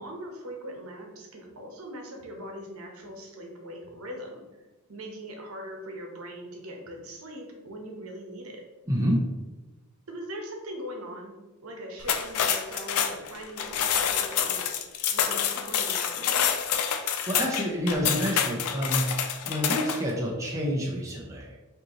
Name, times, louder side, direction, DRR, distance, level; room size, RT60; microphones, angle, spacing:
voice 1, 0.0-4.4 4.9-8.6 10.1-11.3 11.6-16.5, equal, 70° right, 1 dB, 0.9 m, -41 dB
voice 2, 8.9-9.2 16.9-21.5, equal, 15° right, -2 dB, 0.5 m, -28 dB
sound 1, 12.0-20.1, left 8 dB, 85° left, 0.4 m, -27 dB
5.1 x 2.8 x 2.9 m, 1.1 s
head